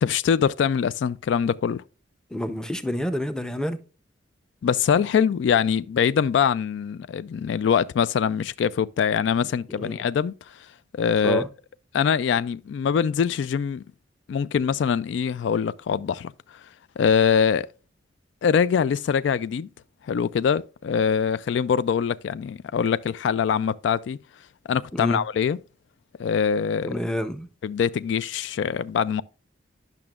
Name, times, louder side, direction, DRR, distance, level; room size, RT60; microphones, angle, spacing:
voice 1, 0.0-1.8 4.6-10.3 10.9-11.4 11.9-13.8 14.3-16.3 17.0-17.7 18.4-19.7 20.0-24.2 24.7-25.6 26.2-27.0 27.6-29.2, left 7 dB, 70° left, 0.3 m, -23 dB
voice 2, 2.3-3.8 9.7-10.0 11.2-11.5 24.9-25.2 26.8-27.5, equal, 5° left, 0.6 m, -28 dB
10.5 x 5.9 x 2.4 m
head